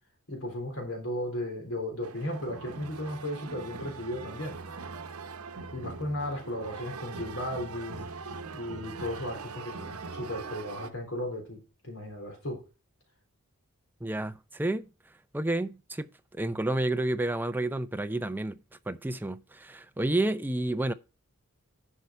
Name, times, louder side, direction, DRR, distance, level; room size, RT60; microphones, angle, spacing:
voice 1, 0.3-4.6 5.7-8.1 8.5-12.6, left 1 dB, 70° left, 3.6 m, -35 dB
sound 1, 2.0-10.9, right 4 dB, 80° right, 0.9 m, -42 dB
voice 2, 14.0-14.9 15.3-18.6 18.9-20.9, right 1 dB, 10° right, 0.4 m, -30 dB
11.0 x 5.5 x 4.5 m
head